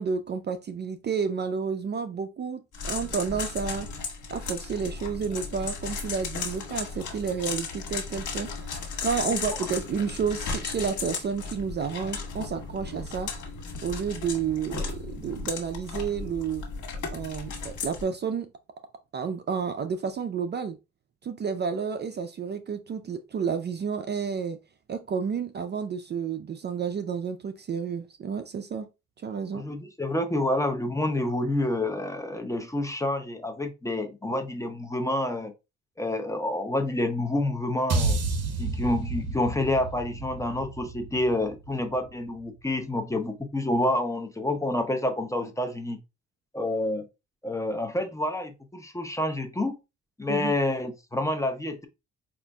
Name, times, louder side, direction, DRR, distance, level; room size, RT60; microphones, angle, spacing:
voice 1, 0.0-3.9 4.3-13.3 13.8-16.6 17.1-18.5 19.1-20.8 21.2-24.6 24.9-28.9 29.2-29.6 50.3-50.5, right 6 dB, 35° right, 0.4 m, -31 dB
sound 1, 2.7-18.0, left 4 dB, 75° left, 1.4 m, -35 dB
voice 2, 29.5-35.5 36.0-38.2 38.6-46.0 46.5-47.1 47.4-49.8 50.2-51.9, left 1 dB, 10° left, 0.6 m, -28 dB
sound 2, 37.9-42.2, right 3 dB, 55° right, 0.8 m, -30 dB
4.9 x 2.5 x 2.2 m
cardioid pair, 90°, 30 cm